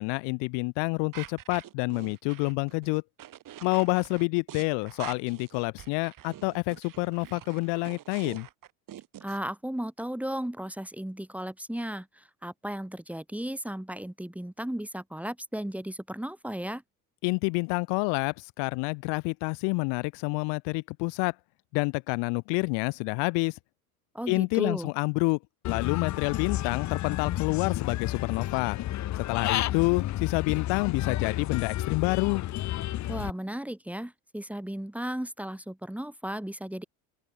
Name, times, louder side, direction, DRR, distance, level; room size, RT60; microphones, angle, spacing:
voice 1, 0.0-3.0 3.6-8.5 17.2-21.3 21.7-23.6 24.3-25.4 25.6-28.8 29.2-32.4, left 32 dB, 75° left, 1.8 m, -28 dB
sound 1, 1.1-9.4, right 12 dB, 50° right, 3.3 m, -45 dB
voice 2, 9.2-16.8 24.1-24.9 33.1-36.8, right 1 dB, 5° right, 2.1 m, -35 dB
Human voice / Bird, 25.6-33.3, left 14 dB, 40° left, 0.8 m, -31 dB
open air
supercardioid pair, 90°, 42 cm